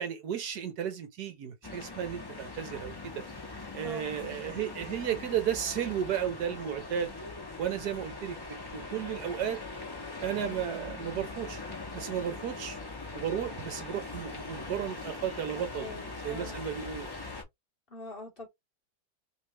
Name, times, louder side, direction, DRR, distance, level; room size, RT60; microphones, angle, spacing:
voice 1, 0.0-3.1 3.7-7.1 7.6-9.6 10.2-11.6 11.9-12.8 13.1-15.9 16.2-17.1, right 9 dB, 70° right, 1.2 m, -34 dB
sound 1, 1.6-17.4, left 3 dB, 20° left, 0.7 m, -41 dB
voice 2, 3.8-4.5 15.6-16.7 17.9-18.5, left 2 dB, 35° left, 1.1 m, -45 dB
3.2 x 3.2 x 3.1 m
omnidirectional pair, 1.9 m